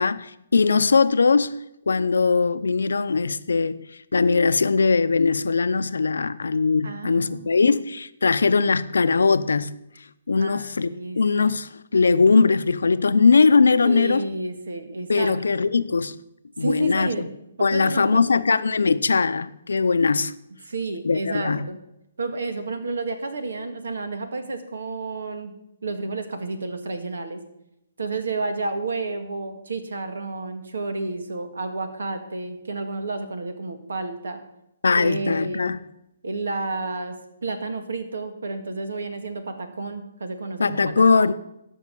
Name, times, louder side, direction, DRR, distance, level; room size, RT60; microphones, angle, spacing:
voice 1, 0.0-1.5 1.9-9.7 10.3-10.9 11.1-14.3 15.1-16.2 16.6-17.1 17.6-20.3 21.0-21.7 34.8-35.8 40.6-41.3, left 4 dB, 85° left, 0.6 m, -20 dB
voice 2, 6.8-7.6 10.4-11.2 13.8-15.3 16.6-17.3 17.6-18.3 20.7-21.8 22.2-25.5 25.8-27.4 28.0-34.4 34.9-35.6 36.2-37.2 37.4-41.3, right 3 dB, 85° right, 1.8 m, -31 dB
13.5 x 5.6 x 6.9 m
hypercardioid pair, 150°, 0 cm